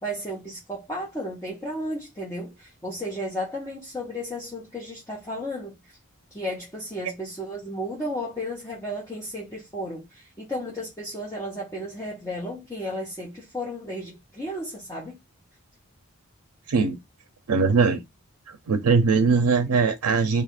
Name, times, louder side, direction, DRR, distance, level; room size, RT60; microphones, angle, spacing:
voice 1, 0.0-5.7 6.3-15.1, equal, 10° left, 0.8 m, -33 dB
voice 2, 16.7-17.0 17.5-18.0 18.5-20.4, right 4 dB, 85° right, 0.5 m, -21 dB
2.7 x 2.4 x 4.1 m
head